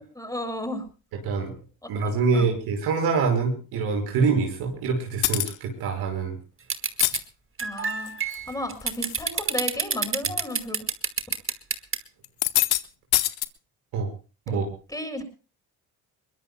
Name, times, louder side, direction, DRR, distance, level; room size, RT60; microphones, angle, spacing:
voice 1, 0.1-0.8 1.8-2.5 7.6-10.8 14.5-14.6 14.9-15.2, left 1 dB, 10° left, 6 dB, 6.7 m, -34 dB
voice 2, 1.9-6.4 13.9-14.1 14.5-14.6, right 4 dB, 85° right, 3 dB, 5.9 m, -25 dB
sound 1, 5.2-5.6 6.8-7.2 7.9-8.4 8.8-9.2 9.5-9.7 10.5-10.6 12.2-12.8 13.1-13.5, left 17 dB, 85° left, 1.0 m, -24 dB
sound 2, 6.7-7.2 7.6-12.0, right 6 dB, 35° right, 1.8 m, -26 dB
22.0 x 22.0 x 2.2 m, 0.34 s
supercardioid pair, 75°, 37 cm